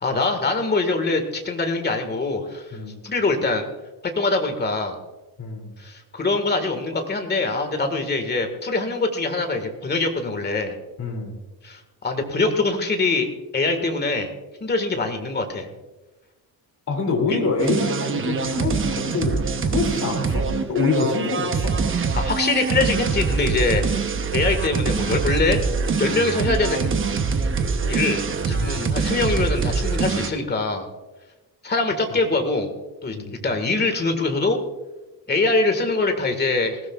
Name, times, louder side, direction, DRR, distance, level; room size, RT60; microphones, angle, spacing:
voice 1, 0.0-2.7 3.0-3.6 4.0-5.0 5.8-10.8 11.6-13.3 13.5-14.3 14.6-15.7 17.3-17.4 22.1-25.6 26.0-26.9 27.9-30.9 31.6-32.7 33.0-33.2 33.4-34.6 35.3-36.8, left 3 dB, 25° left, 6 dB, 1.7 m, -23 dB
voice 2, 2.7-3.0 5.4-5.7 11.0-11.4 16.9-21.8 28.5-28.8 33.1-33.4, left 4 dB, 45° left, 3 dB, 2.8 m, -26 dB
sound 1, 17.6-30.3, right 5 dB, 30° right, 0.9 m, -24 dB
20.0 x 16.0 x 2.4 m, 1.1 s
cardioid pair, 160°, 40 cm